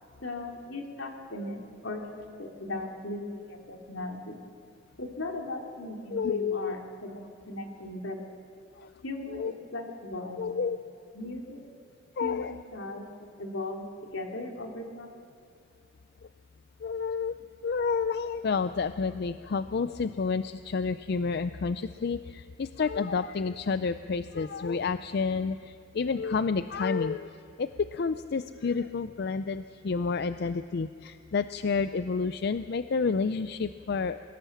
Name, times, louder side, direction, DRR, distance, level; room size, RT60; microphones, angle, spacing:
voice 1, 0.2-4.4 5.0-8.2 9.0-10.7 11.1-11.7 12.2-15.2, left 2 dB, 80° left, 1 dB, 2.8 m, -38 dB
voice 2, 6.1-6.7 8.8-8.9 9.3-9.5 10.4-10.8 12.2-12.5 16.8-17.3 17.6-34.2, left 5 dB, 55° left, 12 dB, 0.4 m, -30 dB
23.0 x 17.0 x 7.2 m, 2.5 s
head